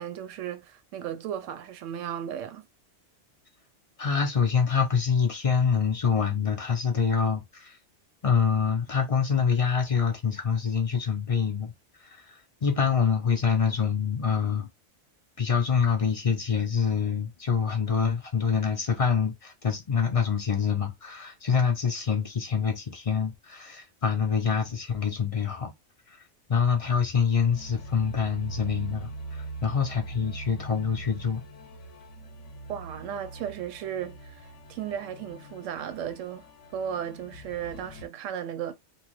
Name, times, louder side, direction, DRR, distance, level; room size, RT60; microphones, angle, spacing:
voice 1, 0.0-2.6 32.7-38.7, right 9 dB, 90° right, 0.9 m, -35 dB
voice 2, 4.0-7.8 8.2-11.7 12.0-14.7 15.4-25.7 26.5-31.4, left 6 dB, 45° left, 0.5 m, -26 dB
sound 1, 27.5-38.1, right 2 dB, 80° left, 1.0 m, -42 dB
3.0 x 2.2 x 3.0 m
omnidirectional pair, 1.3 m